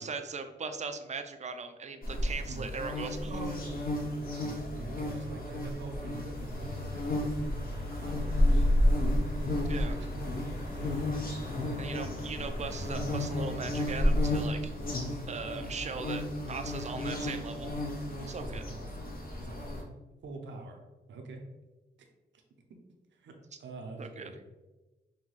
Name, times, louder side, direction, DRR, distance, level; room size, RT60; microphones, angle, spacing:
voice 1, 0.0-3.7 9.7-10.0 11.8-14.7 15.3-17.7 18.3-18.6 24.0-24.3, right 4 dB, 40° right, 7 dB, 0.5 m, -39 dB
sound 1, 2.0-19.8, left 1 dB, 50° left, 1.0 m, -31 dB
voice 2, 4.4-7.4 7.7-8.7 10.1-10.3 10.8-11.3 15.7-15.8 16.8-17.1 18.4-19.0 19.4-19.8 20.2-20.8 21.1-21.4 22.7-22.8 23.1-24.4, right 3 dB, 80° right, 2 dB, 0.7 m, -45 dB
sound 2, 6.3-14.3, left 1 dB, 80° left, 1.1 m, -44 dB
5.6 x 2.2 x 3.2 m, 1.1 s
cardioid pair, 80°, 19 cm